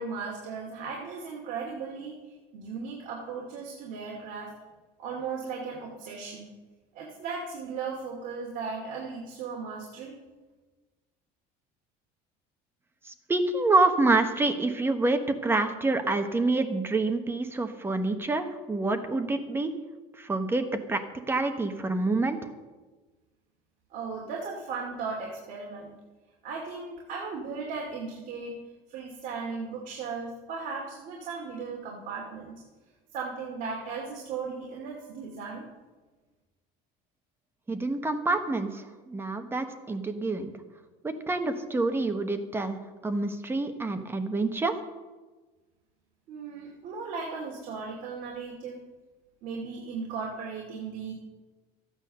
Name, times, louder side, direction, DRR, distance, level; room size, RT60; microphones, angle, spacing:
voice 1, 0.0-4.5 5.0-6.5 6.9-10.1 23.9-26.0 26.4-28.6 28.9-32.6 33.1-35.7 46.3-48.8 49.4-51.1, right 5 dB, 50° right, -1 dB, 2.6 m, -36 dB
voice 2, 13.0-19.7 20.2-22.4 37.7-40.5 41.0-44.7, right 2 dB, 15° right, 7 dB, 1.1 m, -27 dB
14.5 x 9.1 x 6.7 m, 1.3 s
cardioid pair, 150°, 18 cm